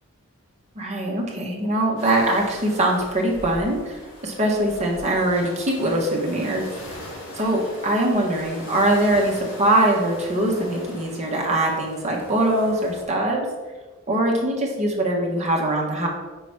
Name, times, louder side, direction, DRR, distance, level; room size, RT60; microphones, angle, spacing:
voice 1, 0.7-6.7 7.3-13.5 14.1-16.1, right 1 dB, 30° right, -2 dB, 1.4 m, -22 dB
sound 1, 2.0-13.0, left 1 dB, 60° left, 2.3 m, -40 dB
5.7 x 4.0 x 5.9 m, 1.2 s
head